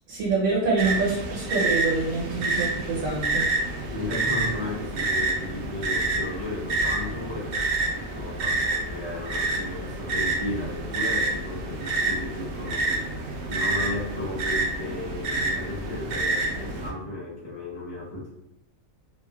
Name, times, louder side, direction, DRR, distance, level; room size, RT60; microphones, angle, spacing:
voice 1, 0.1-3.5, right 3 dB, 85° right, -5 dB, 1.2 m, -26 dB
sound 1, 0.8-16.9, right 2 dB, 65° right, 0.7 m, -28 dB
voice 2, 3.9-18.3, left 2 dB, 20° left, -10 dB, 0.8 m, -35 dB
2.8 x 2.1 x 2.2 m, 0.84 s
omnidirectional pair, 1.4 m